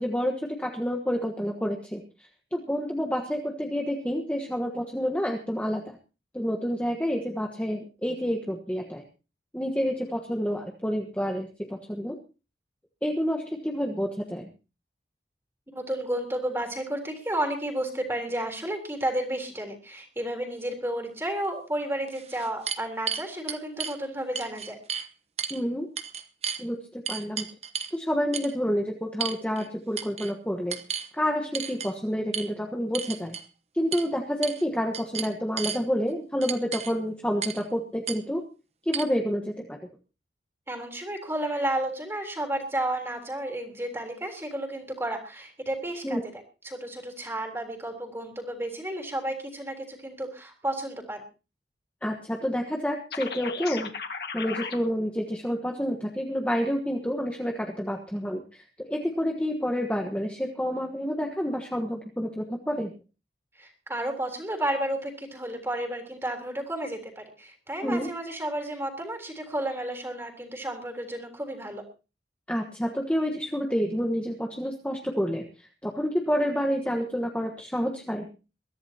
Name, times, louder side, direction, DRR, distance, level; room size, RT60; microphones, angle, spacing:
voice 1, 0.0-2.0 2.5-5.9 6.3-9.0 9.5-12.2 13.0-14.5 25.5-25.9 26.6-27.4 27.9-30.8 31.1-33.3 33.7-38.4 38.8-39.8 46.0-46.2 52.0-53.9 54.3-62.9 67.8-68.1 72.5-75.4 75.8-78.3, equal, 5° left, 2 dB, 1.3 m, -29 dB
voice 2, 15.7-24.8 40.7-51.2 63.6-71.8, right 1 dB, 15° right, 3 dB, 3.6 m, -32 dB
sound 1, 21.4-21.5 22.1-24.0 24.4-25.1 25.4-25.6 26.0-26.6 27.1-28.0 28.3-28.5 29.2-29.7 30.0-30.3 30.7-31.1 31.5-31.9 32.3-32.5 32.9-33.5 33.9-34.1 34.4-34.7 34.9-35.8 36.4-36.9 37.4-37.6 38.1-38.2 38.9-39.0, right 7 dB, 35° right, 1.0 m, -33 dB
sound 2, 53.1-54.8, left 5 dB, 60° left, 1.8 m, -35 dB
22.5 x 14.0 x 2.9 m, 0.32 s
head